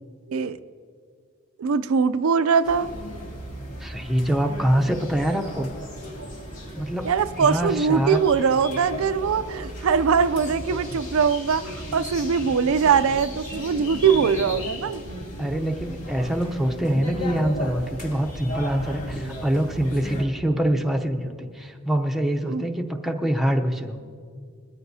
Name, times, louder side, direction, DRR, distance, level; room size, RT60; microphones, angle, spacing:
voice 1, 1.6-2.9 7.0-15.0 22.5-22.6, right 6 dB, 85° right, 12 dB, 0.4 m, -22 dB
sound 1, 2.6-20.2, equal, 90° left, 2.3 m, -35 dB
voice 2, 3.8-5.7 6.8-7.1 7.4-8.2 15.4-24.0, right 1 dB, ahead, 2 dB, 0.6 m, -25 dB
21.0 x 14.0 x 2.7 m, 2.2 s
head